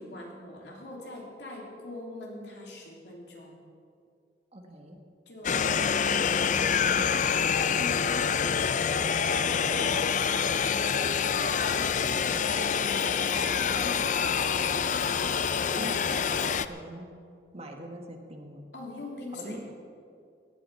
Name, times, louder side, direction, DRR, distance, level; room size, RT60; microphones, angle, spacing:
voice 1, 0.0-3.6 5.2-7.4 7.7-8.1 9.2-14.7 18.7-19.6, left 2 dB, 70° left, -2 dB, 3.3 m, -42 dB
voice 2, 4.5-5.0 5.5-5.8 6.5-7.4 8.1-8.4 12.3-12.5 15.7-16.4 16.7-17.1 17.5-18.7 19.4-19.6, right 1 dB, 35° right, 3 dB, 1.6 m, -43 dB
sound 1, 5.4-16.7, left 7 dB, 45° left, 0.5 m, -26 dB
17.5 x 11.5 x 5.6 m, 2.4 s
head